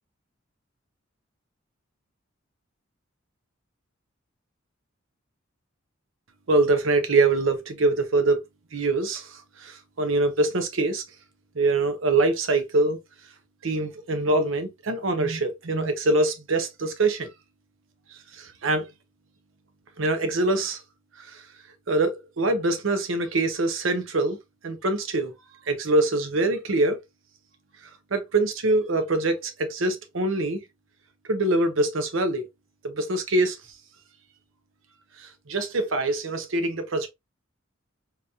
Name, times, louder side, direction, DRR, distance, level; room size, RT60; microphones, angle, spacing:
voice 1, 6.5-8.4 8.7-11.0 11.5-13.0 13.6-17.3 18.3-18.8 20.0-20.8 21.2-21.4 21.9-24.4 24.6-25.3 25.7-27.0 28.1-30.6 31.3-32.5 32.8-33.6 35.2-37.1, right 2 dB, 70° right, 0.7 m, -24 dB
3.9 x 2.8 x 2.3 m
head